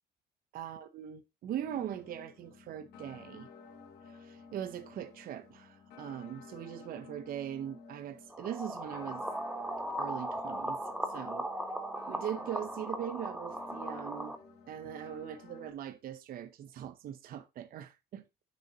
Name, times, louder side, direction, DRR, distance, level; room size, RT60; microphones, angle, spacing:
voice 1, 0.5-3.5 4.1-9.2 10.0-10.8 11.1-11.5 12.1-14.4 14.7-18.2, right 10 dB, 60° right, 0.7 m, -41 dB
sound 1, 1.6-15.7, left 5 dB, 75° left, 2.0 m, -53 dB
sound 2, 8.3-14.4, right 1 dB, 5° right, 1.0 m, -38 dB
8.5 x 6.4 x 3.9 m
cardioid pair, 110°, 17 cm